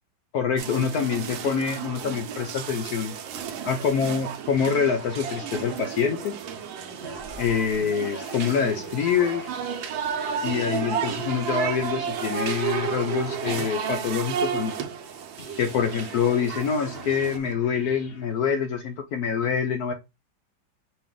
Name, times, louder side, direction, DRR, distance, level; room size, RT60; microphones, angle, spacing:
voice 1, 0.3-3.1 3.6-6.4 7.4-9.4 10.4-14.7 15.6-19.9, left 7 dB, 75° left, 0.9 m, -25 dB
sound 1, 0.6-17.4, right 7 dB, 85° right, 1.4 m, -32 dB
sound 2, 0.9-4.7 5.2-6.4 7.1-7.8, right 6 dB, 65° right, 0.8 m, -45 dB
sound 3, 4.7-6.5 7.0-10.6 11.2-14.8 15.4-18.9, left 4 dB, 45° left, 0.8 m, -48 dB
5.8 x 2.4 x 3.6 m
omnidirectional pair, 2.0 m